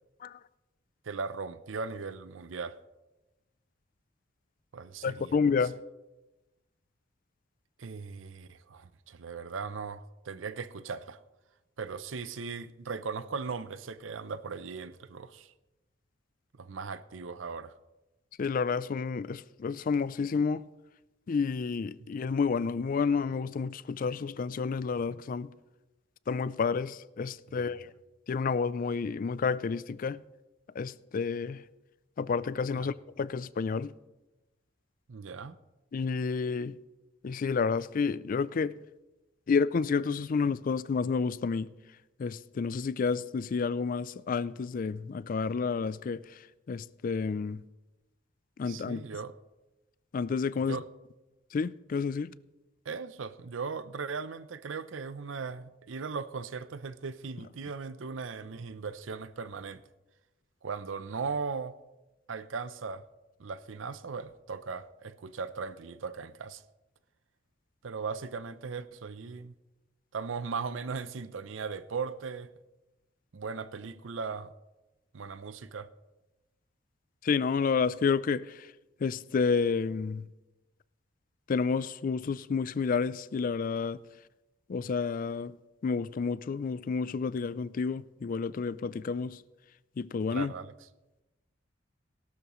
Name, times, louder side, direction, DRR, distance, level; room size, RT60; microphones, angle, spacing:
voice 1, 1.0-2.8 4.7-5.4 7.8-11.2 11.8-15.5 16.6-17.7 22.0-22.1 27.5-27.8 32.7-32.9 35.1-35.6 48.7-49.3 50.5-50.9 52.9-59.8 60.6-61.8 62.3-63.1 63.4-66.6 67.8-69.5 70.1-72.5 73.3-74.5 75.1-75.9 90.3-90.7, right 5 dB, 85° right, 0.6 m, -38 dB
voice 2, 5.0-5.8 18.4-20.6 21.3-25.5 26.3-27.9 28.3-30.2 30.8-31.6 32.2-33.9 35.9-36.8 37.2-38.7 39.5-41.7 42.2-46.2 46.7-47.6 48.6-49.0 50.1-50.8 51.5-52.3 77.2-78.5 79.0-80.2 81.5-84.0 84.7-85.5 85.8-89.4 90.0-90.5, left 5 dB, 45° left, 0.4 m, -30 dB
17.5 x 12.5 x 3.1 m
head